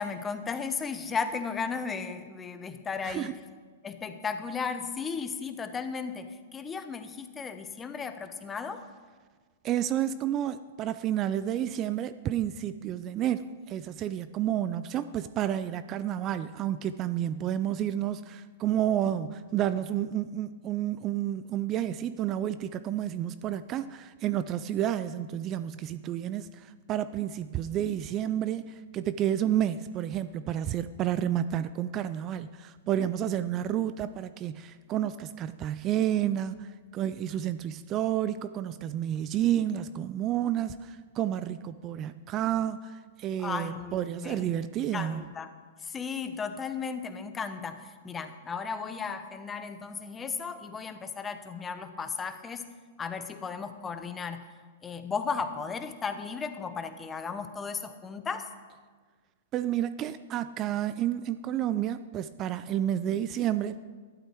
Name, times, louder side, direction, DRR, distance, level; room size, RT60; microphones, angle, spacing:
voice 1, 0.0-3.3 3.8-8.8 43.4-44.5 44.9-45.5 45.8-52.6 53.0-54.4 54.8-58.5, left 5 dB, 20° left, 9 dB, 1.0 m, -35 dB
voice 2, 3.0-3.3 9.6-45.2 59.5-63.8, right 11 dB, 35° right, 14 dB, 0.4 m, -30 dB
12.5 x 11.5 x 4.5 m, 1.5 s
hypercardioid pair, 115°, 0 cm